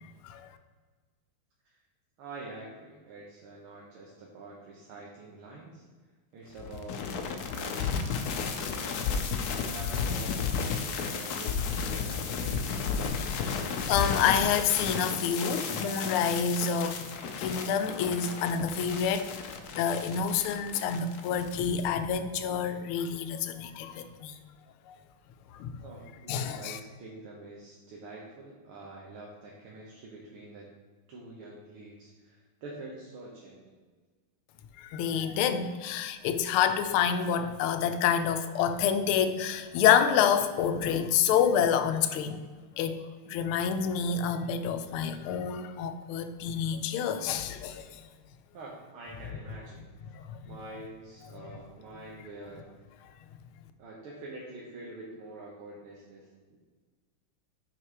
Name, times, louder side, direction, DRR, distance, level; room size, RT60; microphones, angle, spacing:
voice 1, 2.2-5.8 6.3-9.2 9.7-12.8 25.8-30.7 31.1-33.7 48.5-49.9 50.5-52.7 53.8-56.6, right 2 dB, 90° right, -4 dB, 1.9 m, -46 dB
sound 1, 6.6-21.8, left 6 dB, 70° left, 0.9 m, -33 dB
voice 2, 13.3-24.3 24.9-25.0 25.5-25.9 26.3-26.8 34.8-42.4 42.8-48.0 50.1-50.4 51.3-51.5, left 7 dB, 85° left, 9 dB, 1.5 m, -28 dB
5.9 x 4.8 x 4.7 m, 1.4 s
omnidirectional pair, 2.3 m